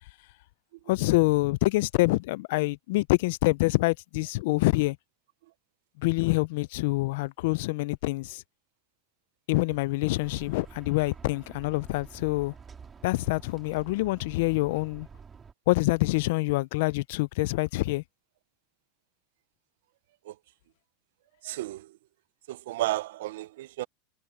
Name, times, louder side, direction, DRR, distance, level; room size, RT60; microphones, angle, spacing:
voice 1, 0.9-5.0 6.0-8.4 9.5-12.5 13.0-15.1 15.7-18.0, left 22 dB, 60° left, 0.3 m, -26 dB
sound 1, 10.2-15.5, right 6 dB, 15° right, 2.9 m, -49 dB
voice 2, 21.4-21.9 22.5-23.9, right 16 dB, 75° right, 0.5 m, -32 dB
supercardioid pair, 170°, 0 cm